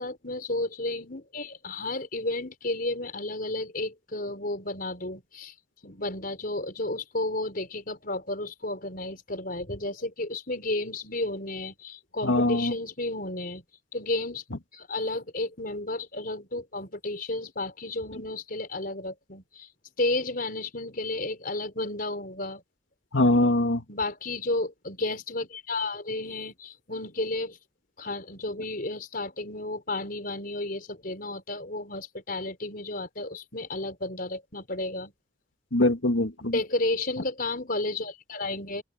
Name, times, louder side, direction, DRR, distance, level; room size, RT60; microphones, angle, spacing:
voice 1, 0.0-5.5 5.8-13.6 13.9-14.4 14.7-19.7 20.0-22.6 23.9-27.6 28.0-35.1 36.4-38.8, left 2 dB, 45° left, 5.3 m, -32 dB
voice 2, 12.2-12.7 23.1-23.8 35.7-36.5, left 1 dB, 75° left, 2.3 m, -22 dB
open air
head